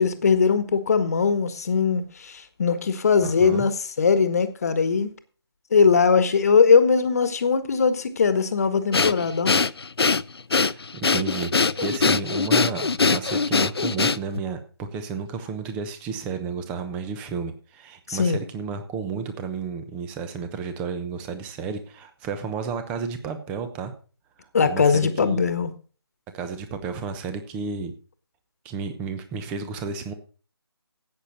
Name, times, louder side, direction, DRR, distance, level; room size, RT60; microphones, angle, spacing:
voice 1, 0.0-5.1 5.7-9.5 18.1-18.4 24.5-25.7, left 5 dB, 35° left, 1.5 m, -20 dB
voice 2, 3.2-3.7 10.5-11.5 11.8-23.9 24.7-25.4 26.3-27.9 28.6-30.1, right 5 dB, 10° right, 0.9 m, -32 dB
Breathing, 8.9-14.5, left 4 dB, 65° left, 0.6 m, -22 dB
14.0 x 8.7 x 4.1 m
figure-of-eight pair, 160°, 14 cm